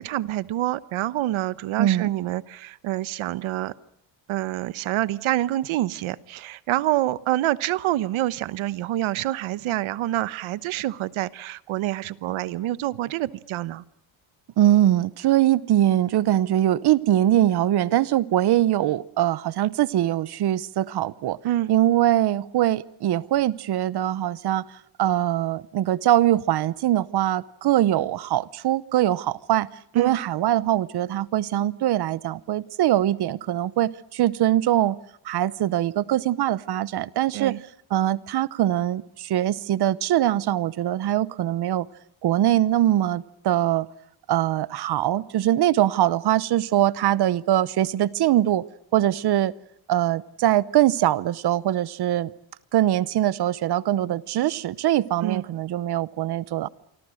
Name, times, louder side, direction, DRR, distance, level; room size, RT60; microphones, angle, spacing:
voice 1, 0.0-3.7 4.3-13.8 21.4-21.7 29.9-30.1 37.3-37.6 55.2-55.4, right 15 dB, 75° right, 17 dB, 1.1 m, -27 dB
voice 2, 1.8-2.1 14.6-21.4 21.7-24.6 25.0-29.7 29.9-35.0 35.2-37.5 37.9-41.9 42.2-43.9 44.3-48.6 48.9-49.5 49.9-52.3 52.7-56.7, right 13 dB, 55° right, 19 dB, 0.9 m, -22 dB
27.5 x 24.5 x 6.5 m, 0.73 s
cardioid pair, 175°, 48 cm